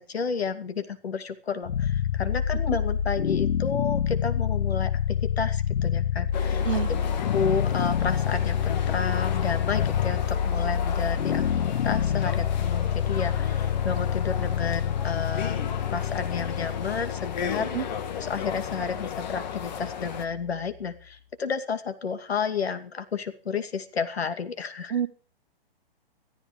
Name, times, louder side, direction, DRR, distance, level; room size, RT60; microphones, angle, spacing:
voice 1, 0.0-6.6 7.3-15.6 15.9-17.7 18.2-24.9, left 5 dB, 90° left, 9 dB, 2.5 m, -31 dB
sound 1, 1.7-20.7, left 8 dB, 70° left, 1.0 m, -27 dB
voice 2, 2.7-2.8 6.6-6.9 17.7-17.9 24.9-25.1, right 9 dB, 60° right, 8 dB, 1.8 m, -27 dB
sound 2, 6.3-20.2, left 8 dB, 45° left, 2.2 m, -35 dB
15.0 x 14.0 x 5.2 m, 0.40 s
hypercardioid pair, 155°, 30 cm